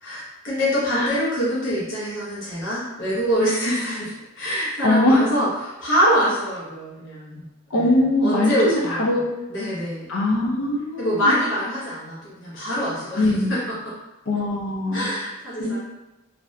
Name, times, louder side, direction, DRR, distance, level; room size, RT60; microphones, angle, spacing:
voice 1, 0.0-7.5 7.7-9.2 9.5-10.1 11.0-13.9 14.9-15.8, equal, 65° left, -9 dB, 0.9 m, -25 dB
voice 2, 4.8-5.3 7.7-9.2 10.1-11.3 13.2-13.6 14.3-15.1 15.6-15.8, left 1 dB, 85° left, -1 dB, 0.6 m, -21 dB
2.6 x 2.5 x 3.2 m, 1.0 s
head